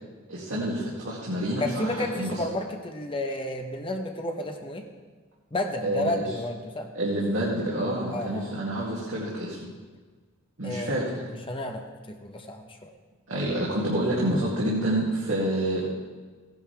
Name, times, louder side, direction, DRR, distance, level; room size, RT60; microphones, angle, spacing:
voice 1, 0.3-2.4 5.8-6.2 6.9-9.7 10.6-11.2 13.3-15.9, right 1 dB, 65° right, -7 dB, 2.5 m, -28 dB
voice 2, 1.6-4.9 5.5-6.9 8.1-8.5 10.6-12.9, left 1 dB, 25° left, 3 dB, 1.0 m, -32 dB
16.0 x 10.5 x 3.4 m, 1.4 s
head